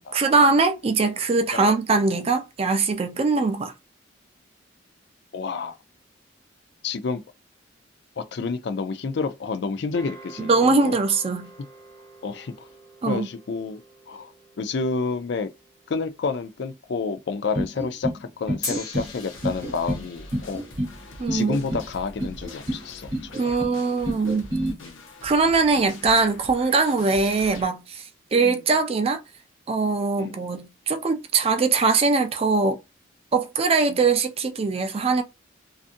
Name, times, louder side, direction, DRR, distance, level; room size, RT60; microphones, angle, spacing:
voice 1, 0.0-3.7 10.4-11.5 13.0-13.3 21.2-21.6 23.4-24.5 25.2-29.2 29.7-32.8 33.3-35.2, right 4 dB, 30° right, 0.4 m, -22 dB
voice 2, 5.3-5.8 6.8-7.2 8.2-10.9 12.2-12.7 13.1-13.8 14.1-15.5 15.9-20.6 21.3-23.6 24.8-25.0 28.4-28.6 30.2-30.5 33.9-34.1, left 4 dB, 60° left, 0.4 m, -30 dB
sound 1, 9.9-16.4 18.6-23.1, left 2 dB, 20° left, 1.2 m, -43 dB
sound 2, 17.5-18.2 18.5-19.1 19.4-20.0 20.3-20.9 21.3-21.9 22.2-22.8 23.1-23.7 24.0-24.7, right 1 dB, 55° right, 1.1 m, -28 dB
sound 3, 18.9-27.7, left 2 dB, 85° left, 0.7 m, -44 dB
2.6 x 2.4 x 2.5 m
head